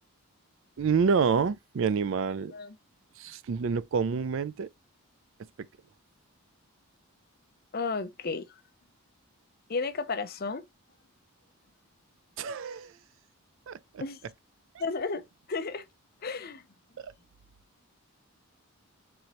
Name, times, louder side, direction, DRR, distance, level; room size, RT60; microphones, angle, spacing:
voice 1, 0.8-2.5 3.2-4.7 12.4-12.9 13.7-14.0 17.0-17.1, right 5 dB, 55° right, 0.3 m, -28 dB
voice 2, 7.7-8.5 9.7-10.6 14.0-14.2 14.8-15.2 15.5-15.8 16.2-16.6, left 4 dB, 40° left, 0.6 m, -32 dB
4.3 x 3.9 x 3.0 m
head